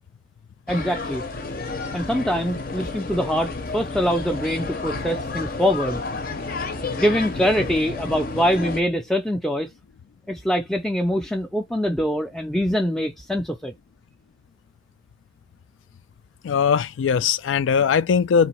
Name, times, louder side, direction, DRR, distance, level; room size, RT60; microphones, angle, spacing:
sound 1, 0.7-8.8, left 3 dB, 50° left, 0.6 m, -31 dB
voice 1, 0.7-1.2 1.9-6.0 7.0-9.7 10.3-13.7, equal, ahead, 0.4 m, -24 dB
voice 2, 16.4-18.5, left 6 dB, 85° left, 0.3 m, -20 dB
3.8 x 2.6 x 4.3 m
head